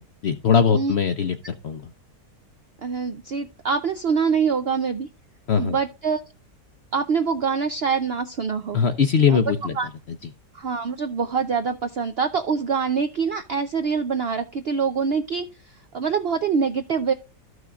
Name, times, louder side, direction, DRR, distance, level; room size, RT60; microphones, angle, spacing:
voice 1, 0.2-1.8 5.5-5.8 8.7-9.7, left 6 dB, 60° left, 9 dB, 0.7 m, -20 dB
voice 2, 2.8-5.1 5.6-6.2 6.9-8.8 9.3-9.4 9.7-9.9 10.5-17.1, right 5 dB, 65° right, 9 dB, 0.6 m, -25 dB
13.5 x 6.2 x 2.3 m, 0.30 s
omnidirectional pair, 1.7 m